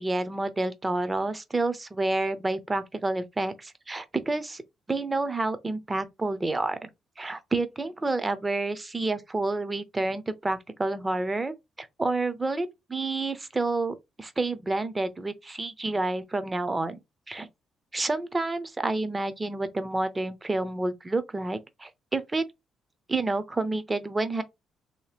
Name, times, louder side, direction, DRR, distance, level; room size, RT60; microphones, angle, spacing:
voice 1, 0.0-4.6 4.9-6.9 7.2-17.0 17.3-17.5 17.9-22.4 23.1-24.4, right 2 dB, 20° right, 0.5 m, -29 dB
2.7 x 2.0 x 3.2 m
cardioid pair, 90°, 0 cm